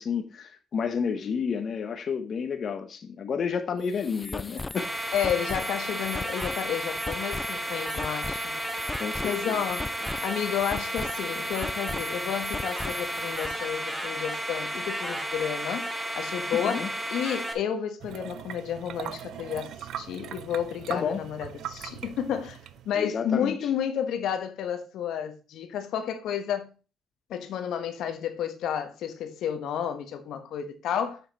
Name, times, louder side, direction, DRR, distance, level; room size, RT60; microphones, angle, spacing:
voice 1, 0.0-4.9 9.0-9.7 16.5-16.9 20.9-21.2 22.9-23.5, left 6 dB, 55° left, 0.9 m, -30 dB
sound 1, 3.8-13.6, left 3 dB, 20° left, 0.4 m, -38 dB
sound 2, 4.8-17.5, right 1 dB, 10° right, 1.5 m, -33 dB
voice 2, 5.1-8.6 9.2-9.9 10.2-15.9 16.2-16.9 17.1-22.6 22.8-26.7 27.3-31.2, left 8 dB, 80° left, 1.1 m, -31 dB
sound 3, 18.0-23.0, right 10 dB, 75° right, 0.6 m, -40 dB
7.3 x 5.9 x 4.2 m
cardioid pair, 90°, 0 cm